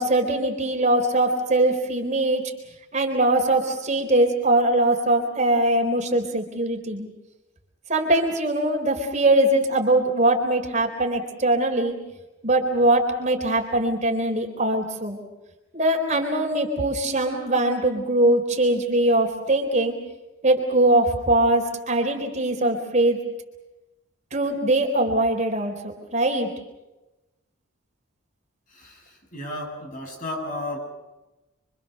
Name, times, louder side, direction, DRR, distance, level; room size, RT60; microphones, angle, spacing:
voice 1, 0.0-2.4 2.9-7.1 7.9-12.0 12.4-15.2 15.7-20.0 20.4-23.2 24.3-26.5, right 1 dB, 35° right, 2 dB, 3.9 m, -22 dB
voice 2, 28.7-30.8, left 1 dB, 40° left, 2 dB, 7.9 m, -33 dB
28.0 x 25.5 x 6.8 m, 1.0 s
head